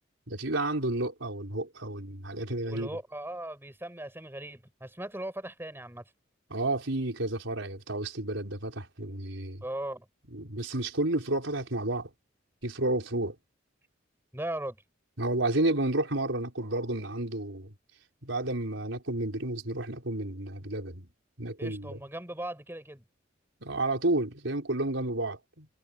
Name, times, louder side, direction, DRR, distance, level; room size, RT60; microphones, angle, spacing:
voice 1, 0.3-2.9 6.5-9.6 10.3-12.1 12.6-13.4 15.2-17.7 18.2-21.1 21.4-22.0 23.6-25.7, right 2 dB, 85° right, 4.4 m, -31 dB
voice 2, 2.6-6.0 9.6-10.1 14.3-14.8 21.6-23.0, right 1 dB, 10° right, 5.2 m, -38 dB
head